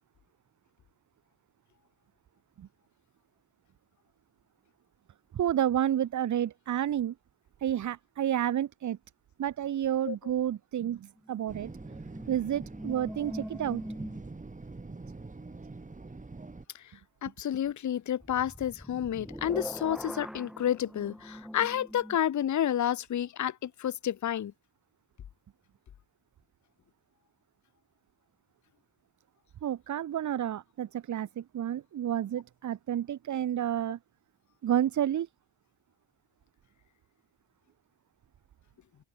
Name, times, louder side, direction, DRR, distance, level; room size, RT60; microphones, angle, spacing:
voice 1, 5.3-7.1 7.6-9.0 9.4-11.7 12.3-13.8 29.6-34.0 34.6-35.3, right 10 dB, 40° right, 0.5 m, -30 dB
sound 1, 11.2-14.6 18.2-22.2, equal, ahead, 3.6 m, -43 dB
sound 2, 11.5-16.6, right 3 dB, 15° right, 1.5 m, -44 dB
voice 2, 17.2-24.5, left 10 dB, 40° left, 0.6 m, -30 dB
wide cardioid pair, 135°, 46 cm